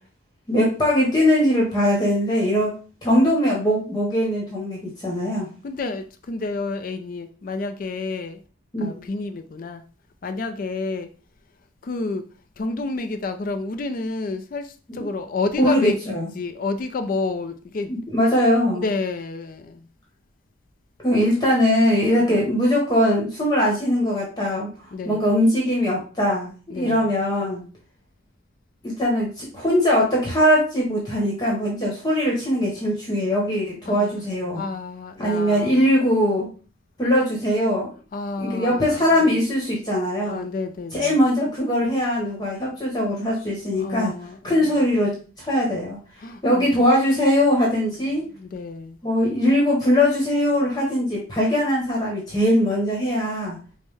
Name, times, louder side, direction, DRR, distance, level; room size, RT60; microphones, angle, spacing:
voice 1, 0.5-2.7 3.0-5.5 8.7-9.0 15.6-16.3 17.9-18.9 21.0-24.7 25.0-27.6 28.8-34.6 35.2-36.5 37.0-37.9 38.4-40.4 40.9-44.1 44.4-46.0 46.4-48.2 49.0-53.6, equal, 20° left, 1.0 m, -21 dB
voice 2, 5.6-8.4 8.8-9.8 10.2-11.1 11.8-12.2 12.6-18.0 18.7-19.9 22.3-22.5 24.9-25.2 26.7-27.1 33.9-34.2 34.5-35.8 38.1-39.4 40.2-41.2 43.8-44.9 46.2-46.9 48.2-49.0, left 3 dB, 45° left, 0.3 m, -30 dB
5.2 x 2.1 x 3.2 m
head